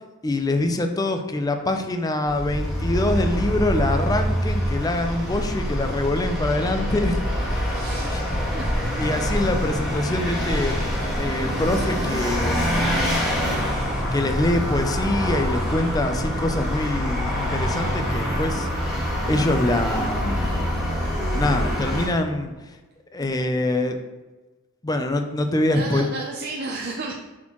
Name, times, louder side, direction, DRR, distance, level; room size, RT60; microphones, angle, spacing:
voice 1, 0.2-7.2 7.5-8.2 9.0-10.8 11.2-12.8 14.1-18.7 19.3-20.6 21.3-22.5 23.1-24.0 24.8-26.1, left 2 dB, 20° left, 6 dB, 0.5 m, -24 dB
Vehicle, 2.3-22.1, equal, ahead, 1.7 m, -25 dB
voice 2, 7.7-8.7 25.7-27.1, right 3 dB, 50° right, -1 dB, 0.6 m, -33 dB
7.3 x 4.3 x 3.0 m, 1.2 s
head